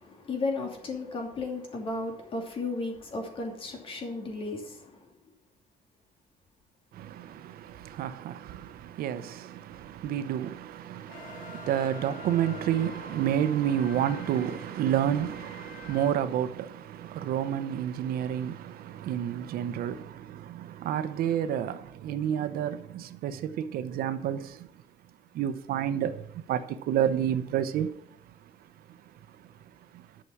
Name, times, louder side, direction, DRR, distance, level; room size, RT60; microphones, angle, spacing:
voice 1, 0.0-5.1, left 3 dB, 35° left, 2.8 m, -34 dB
voice 2, 6.9-24.7 25.3-27.9 29.9-30.0, right 10 dB, 80° right, 0.9 m, -30 dB
sound 1, 11.1-16.1, left 4 dB, 65° left, 1.9 m, -46 dB
11.5 x 6.2 x 7.1 m
cardioid pair, 175°, 15 cm